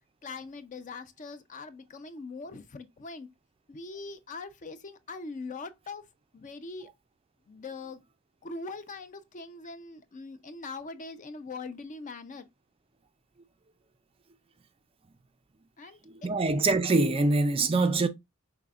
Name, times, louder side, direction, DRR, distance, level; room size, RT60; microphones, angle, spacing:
voice 1, 0.2-3.3 3.7-6.0 6.3-6.9 7.5-8.0 8.4-12.5 15.8-16.3, left 3 dB, 35° left, 0.4 m, -42 dB
voice 2, 16.1-18.1, right 3 dB, 25° right, 0.4 m, -24 dB
5.4 x 3.4 x 2.3 m
head